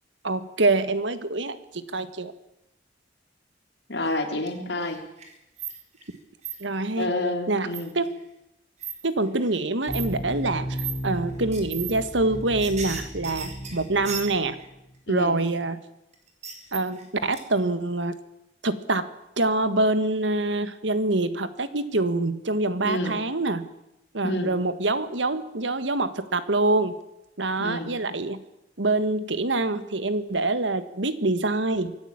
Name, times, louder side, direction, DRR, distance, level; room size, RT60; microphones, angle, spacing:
voice 1, 0.2-2.3 6.6-7.1 7.5-8.1 9.0-10.8 11.0-14.6 15.1-15.8 16.7-18.2 18.6-19.1 19.4-23.7 24.1-27.0 27.4-28.4 28.8-32.0, right 2 dB, 80° right, 12 dB, 1.6 m, -25 dB
voice 2, 3.9-5.0 7.0-7.9 15.1-15.4 22.8-23.2 24.2-24.5 27.6-27.9, left 1 dB, 65° left, 5 dB, 3.4 m, -28 dB
sound 1, 4.0-4.6 4.8-6.2 6.4-6.6 7.7-8.1 8.8-8.9 9.4-9.5 9.9-10.1 10.7-11.0 11.5-11.9 12.2-14.7 16.1-17.1 17.3-17.4, right 7 dB, 35° right, 4.0 m, -35 dB
sound 2, 9.9-14.9, equal, 20° left, 2.0 m, -35 dB
24.0 x 14.5 x 8.9 m, 0.89 s
head